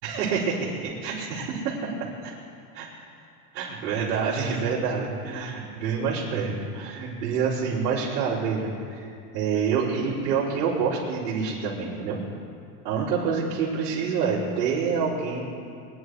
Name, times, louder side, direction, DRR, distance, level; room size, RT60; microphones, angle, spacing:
voice 1, 0.0-1.9 2.2-2.3 2.7-2.9 3.5-12.2 12.8-15.4, right 5 dB, 80° right, -12 dB, 4.6 m, -27 dB
22.5 x 11.0 x 4.8 m, 2.5 s
supercardioid pair, 120°, 46 cm